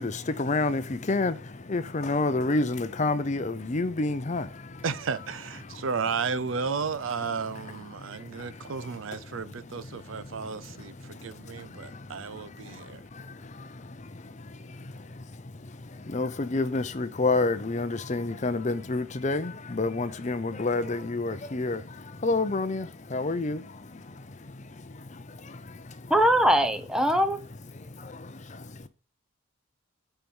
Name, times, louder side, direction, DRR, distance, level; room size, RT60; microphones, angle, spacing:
voice 1, 0.0-4.8 5.6-5.9 7.4-26.1 27.1-27.2 27.7-28.9, left 3 dB, 35° left, 0.6 m, -31 dB
voice 2, 4.8-13.0, right 5 dB, 75° right, 0.6 m, -33 dB
voice 3, 26.1-27.4, equal, 5° right, 0.9 m, -21 dB
9.0 x 4.6 x 5.5 m
head